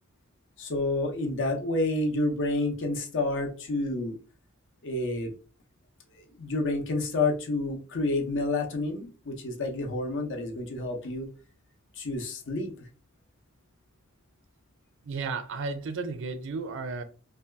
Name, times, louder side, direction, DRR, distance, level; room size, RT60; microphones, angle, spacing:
voice 1, 0.6-4.2 4.8-5.3 6.4-11.3 12.0-12.8, left 2 dB, 60° left, 0.7 m, -29 dB
voice 2, 15.0-17.0, right 4 dB, 60° right, 0.5 m, -33 dB
2.6 x 2.3 x 3.3 m
head